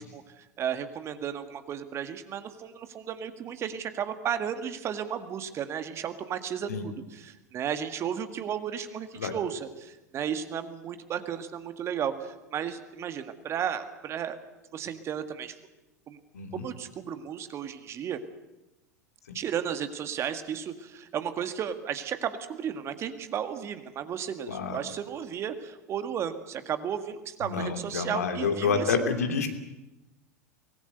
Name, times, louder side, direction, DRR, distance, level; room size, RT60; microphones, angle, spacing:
voice 1, 0.0-14.4 14.7-15.6 16.1-16.2 16.5-18.2 19.3-29.0, right 8 dB, 30° right, 10 dB, 1.8 m, -34 dB
voice 2, 16.3-16.6 19.3-19.4 24.5-24.8 27.4-29.5, left 5 dB, 70° left, 6 dB, 2.7 m, -28 dB
24.0 x 19.0 x 8.0 m, 0.99 s
figure-of-eight pair, 85°, 9 cm